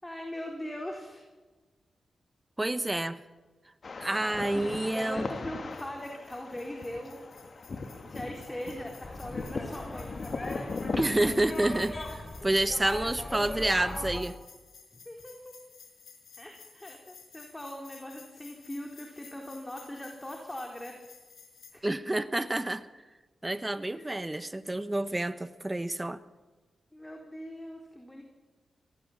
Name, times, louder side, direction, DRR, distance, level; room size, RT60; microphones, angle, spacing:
voice 1, 0.0-1.2 4.4-4.7 4.9-7.3 8.0-10.1 12.4-12.5 14.9-15.6 16.4-21.0 21.7-21.8 23.9-24.2 26.9-28.2, left 1 dB, 15° left, 2 dB, 4.1 m, -41 dB
voice 2, 2.6-3.2 4.0-5.2 11.0-14.4 21.8-22.9 23.4-26.2, right 1 dB, 20° right, 13 dB, 1.1 m, -29 dB
sound 1, 3.8-11.0, left 3 dB, 55° left, 2.3 m, -38 dB
sound 2, 5.7-21.7, left 6 dB, 80° left, 5.1 m, -55 dB
sound 3, 9.0-14.2, left 1 dB, 35° left, 5.0 m, -39 dB
22.5 x 17.5 x 7.4 m, 1.2 s
supercardioid pair, 45°, 0 cm